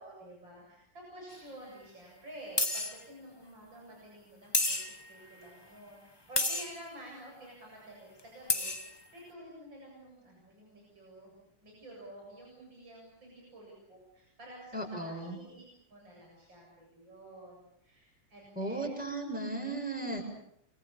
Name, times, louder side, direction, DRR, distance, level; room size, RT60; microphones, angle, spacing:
voice 1, 0.0-4.8 5.1-15.6 15.9-18.9, right 1 dB, 80° right, -2 dB, 8.4 m, -50 dB
sound 1, 1.3-1.4 2.6-3.0 4.5-5.1 6.4-6.8 8.2-8.3 8.5-9.0, left 2 dB, 15° left, 1.4 m, -30 dB
voice 2, 14.7-15.4 18.6-20.2, right 2 dB, 5° right, 2 dB, 7.1 m, -36 dB
29.5 x 25.0 x 7.0 m, 0.72 s
omnidirectional pair, 2.0 m